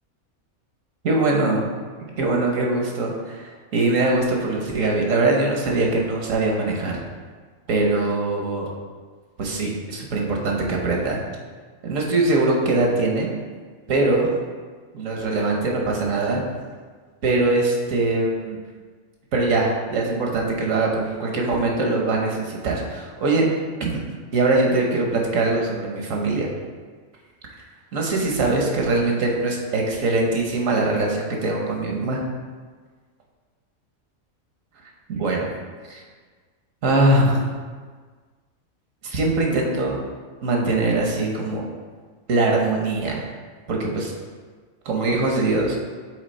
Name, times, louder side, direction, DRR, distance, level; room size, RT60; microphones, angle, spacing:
voice 1, 1.0-1.6 2.2-7.0 7.7-8.7 9.4-11.2 11.8-13.3 13.9-14.3 14.9-16.4 17.2-18.6 19.3-23.5 23.8-24.0 24.3-26.5 27.9-32.2 35.1-35.5 35.9-36.0 36.8-37.5 39.0-40.0 40.4-41.6 42.3-43.2 43.7-44.1 44.8-45.8, right 2 dB, 75° right, 0 dB, 1.4 m, -22 dB
6.5 x 4.0 x 4.1 m, 1.5 s
omnidirectional pair, 1.4 m